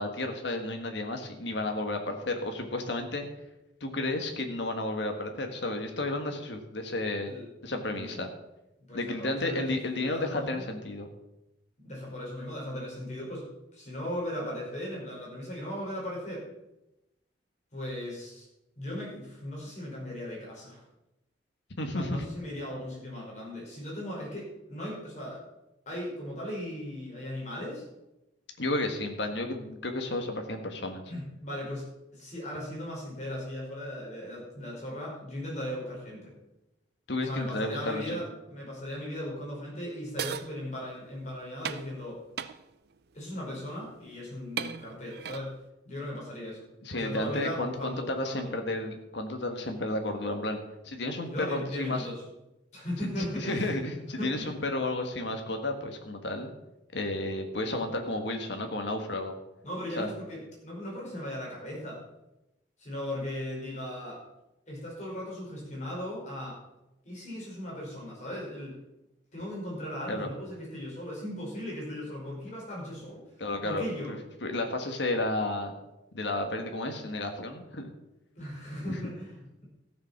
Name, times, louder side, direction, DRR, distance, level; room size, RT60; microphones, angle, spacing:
voice 1, 0.0-3.2 3.8-7.3 7.6-8.3 8.9-11.1 21.8-22.2 28.6-31.0 37.1-38.2 46.8-50.6 50.8-52.1 53.4-56.5 56.9-59.3 60.0-60.1 70.1-70.3 73.4-75.7 76.1-77.9, left 2 dB, 65° left, 4 dB, 1.7 m, -32 dB
voice 2, 7.8-8.1 8.9-10.6 11.8-13.4 13.7-16.4 17.7-18.5 18.8-20.8 21.9-25.4 25.9-27.8 31.1-36.3 37.2-42.2 43.1-45.6 45.9-46.7 46.9-48.5 51.2-52.2 52.7-53.6 54.2-54.5 59.6-62.0 62.8-64.2 64.7-66.6 67.0-68.8 69.3-73.2 73.6-74.1 78.4-79.7, left 1 dB, 40° left, -3 dB, 5.1 m, -37 dB
sound 1, 40.2-40.5 41.6-41.9 42.4-42.6 43.7-43.9 44.6-45.5, right 7 dB, 60° right, 0.5 m, -35 dB
14.5 x 7.1 x 5.9 m, 0.92 s
head